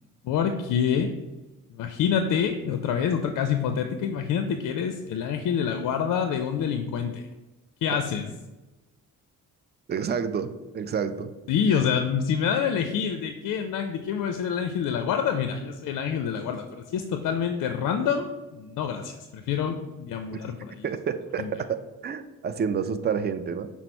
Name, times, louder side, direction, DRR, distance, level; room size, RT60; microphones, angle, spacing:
voice 1, 0.2-1.1 1.7-7.3 7.8-8.3 11.5-20.8 21.4-21.5, left 7 dB, 50° left, 7 dB, 0.5 m, -27 dB
voice 2, 9.9-11.3 20.3-20.4 20.8-23.7, right 6 dB, 25° right, 11 dB, 0.3 m, -29 dB
5.7 x 2.0 x 4.4 m, 1.1 s
hypercardioid pair, 45°, 43 cm